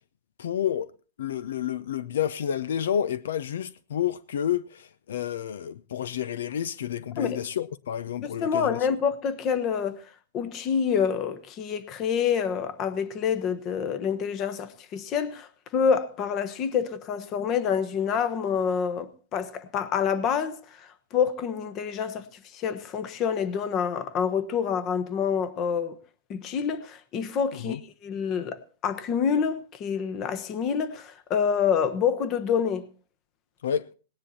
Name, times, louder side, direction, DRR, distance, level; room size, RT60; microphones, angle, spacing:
voice 1, 0.4-0.9 1.2-8.8 27.5-27.8 33.6-33.9, left 9 dB, 80° left, 0.6 m, -30 dB
voice 2, 8.2-10.0 10.3-22.3 22.5-26.0 26.3-32.9, left 7 dB, 30° left, 1.2 m, -27 dB
18.0 x 10.0 x 4.2 m
supercardioid pair, 150°, 0 cm